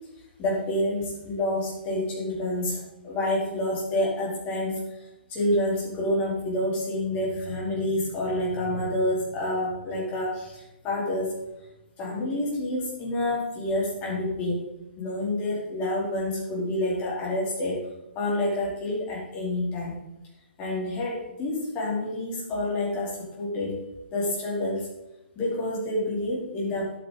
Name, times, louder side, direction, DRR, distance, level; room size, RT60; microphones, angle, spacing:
voice 1, 0.4-4.8 5.3-11.4 12.0-14.7 15.0-17.8 18.1-20.0 20.6-23.8 24.1-24.9 25.3-26.9, left 1 dB, 25° left, -5 dB, 4.6 m, -28 dB
11.0 x 8.9 x 4.2 m, 0.95 s
figure-of-eight pair, 125°, 6 cm